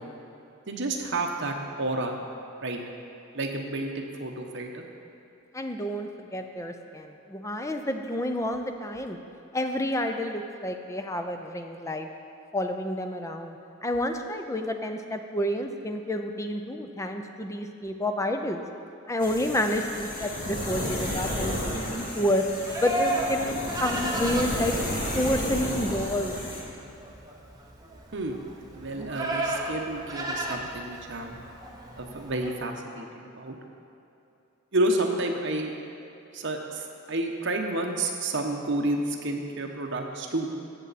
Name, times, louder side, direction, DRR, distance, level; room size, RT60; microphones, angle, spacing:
voice 1, 0.7-2.2 2.6-2.8 3.3-4.8 28.1-28.4 28.7-31.4 32.0-33.1 33.4-33.6 34.7-35.7 36.3-40.5, right 2 dB, 55° right, 2 dB, 1.0 m, -30 dB
voice 2, 5.5-9.2 9.5-12.1 12.5-13.6 13.8-18.6 19.1-22.4 22.8-23.6 23.8-24.7 25.1-26.3, left 1 dB, 15° left, 5 dB, 0.5 m, -29 dB
sound 1, 19.2-26.6, equal, 40° left, 2.0 m, -32 dB
Livestock farm animals working animals, 21.5-32.5, right 1 dB, 20° right, 0.9 m, -34 dB
16.0 x 7.0 x 4.2 m, 2.7 s
head